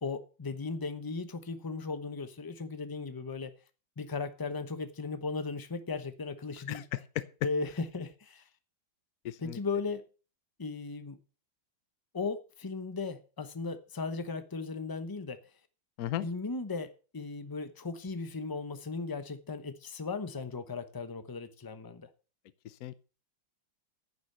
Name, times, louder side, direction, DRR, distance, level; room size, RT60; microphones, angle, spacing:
voice 1, 0.0-3.5 4.0-6.8 7.4-8.4 9.4-10.0 10.6-11.2 12.1-15.4 16.2-22.1, left 4 dB, 30° left, 10 dB, 0.4 m, -37 dB
voice 2, 6.7-7.3 9.2-9.6 16.0-16.3 22.6-22.9, left 13 dB, 65° left, 14 dB, 1.0 m, -36 dB
10.0 x 7.0 x 6.6 m, 0.36 s
omnidirectional pair, 2.1 m